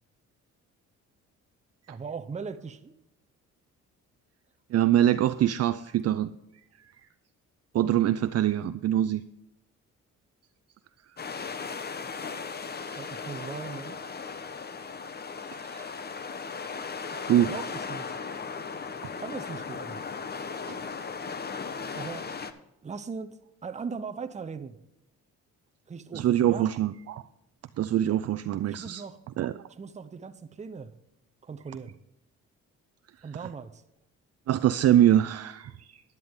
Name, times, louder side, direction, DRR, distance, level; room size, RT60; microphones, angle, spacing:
voice 1, 1.9-2.9 13.0-14.0 17.1-18.1 19.0-20.0 21.9-22.3 22.8-24.8 25.9-26.7 28.7-29.2 29.8-30.9 31.4-32.0 33.2-33.8, right 5 dB, 25° right, 8 dB, 0.8 m, -39 dB
voice 2, 4.7-6.3 6.8-6.9 7.7-9.2 15.5-15.9 17.3-17.5 20.7-20.8 26.1-27.2 27.8-29.0 29.4-29.7 34.5-36.0, right 11 dB, 55° right, 12 dB, 0.5 m, -24 dB
sound 1, 11.2-22.5, left 5 dB, 35° left, 0.9 m, -37 dB
11.0 x 10.5 x 3.6 m, 0.88 s
cardioid pair, 90°, 30 cm